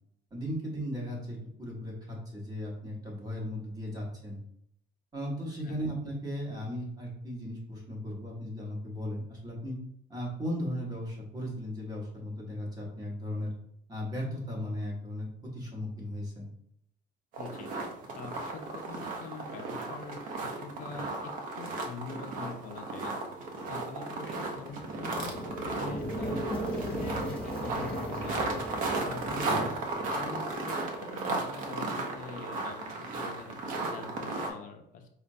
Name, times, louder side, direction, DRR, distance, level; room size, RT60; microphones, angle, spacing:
voice 1, 0.3-4.4 5.1-9.8 10.1-13.5 13.9-16.5 29.4-29.7, equal, 20° right, -2 dB, 0.9 m, -36 dB
sound 1, 17.3-34.5, right 3 dB, 45° right, 0.6 m, -35 dB
voice 2, 17.4-17.7 18.2-26.4 26.8-29.8 30.1-35.1, left 4 dB, 45° left, 5 dB, 0.5 m, -44 dB
sound 2, 22.1-27.7, right 3 dB, 65° right, 1.0 m, -55 dB
sound 3, 24.6-30.6, equal, 5° left, 0.9 m, -37 dB
5.0 x 2.2 x 2.6 m, 0.71 s
cardioid pair, 175°, 19 cm